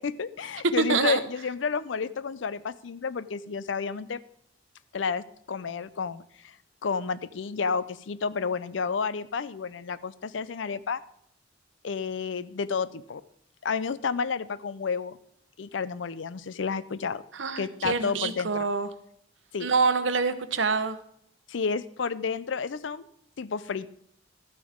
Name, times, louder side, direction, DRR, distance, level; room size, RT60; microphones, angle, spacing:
voice 1, 0.0-4.2 4.9-6.5 6.8-11.0 11.8-13.2 13.6-15.2 15.6-17.2 17.6-18.7 19.5-19.7 21.5-23.1 23.4-23.9, left 5 dB, 80° left, 17 dB, 0.5 m, -31 dB
voice 2, 0.8-1.2 17.3-18.9 19.6-21.0, right 4 dB, 85° right, 11 dB, 0.9 m, -26 dB
12.5 x 9.3 x 3.6 m, 0.69 s
head